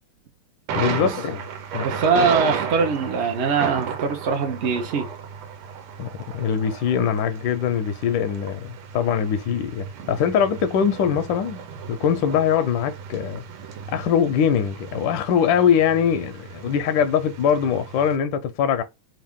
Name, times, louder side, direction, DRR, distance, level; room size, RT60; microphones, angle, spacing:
voice 1, 0.7-1.4 1.7-2.0 6.0-13.4 13.9-18.8, left 8 dB, 75° left, 1.1 m, -22 dB
Thunder, 0.7-18.2, right 7 dB, 85° right, 1.6 m, -34 dB
voice 2, 1.8-5.1, right 5 dB, 70° right, 0.6 m, -22 dB
3.6 x 2.6 x 3.5 m
omnidirectional pair, 2.3 m